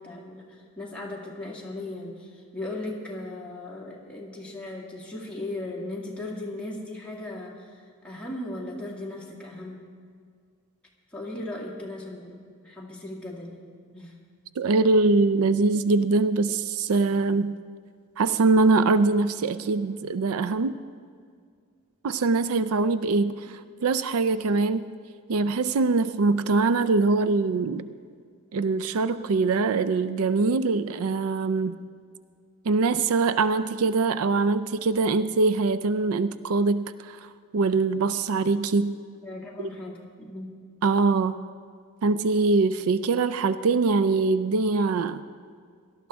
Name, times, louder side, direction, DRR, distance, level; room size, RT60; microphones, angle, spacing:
voice 1, 0.0-7.8 8.0-9.8 11.1-13.7 13.9-14.1 39.2-40.5, left 2 dB, 5° left, -4 dB, 2.1 m, -37 dB
voice 2, 14.6-17.5 18.2-20.8 22.0-24.9 25.3-27.8 28.5-31.8 32.7-37.3 37.5-38.9 40.8-41.4 42.0-45.2, right 3 dB, 80° right, 13 dB, 0.4 m, -23 dB
18.0 x 12.5 x 3.5 m, 2.1 s
head